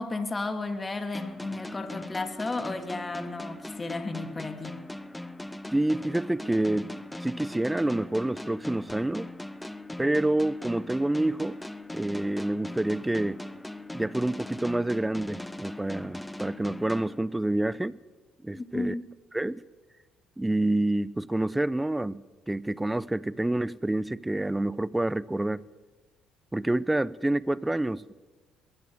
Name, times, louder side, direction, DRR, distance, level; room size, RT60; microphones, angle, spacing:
voice 1, 0.0-4.8 18.5-19.0, left 3 dB, 25° left, 2.6 m, -33 dB
sound 1, 1.1-17.7, left 1 dB, 5° left, 0.9 m, -40 dB
voice 2, 5.7-9.3 10.0-11.6 11.9-13.4 13.9-18.0 18.4-19.0 19.3-19.6 20.4-25.7 26.5-28.2, right 1 dB, 10° right, 0.6 m, -28 dB
21.5 x 17.0 x 7.9 m
supercardioid pair, 85°, 0 cm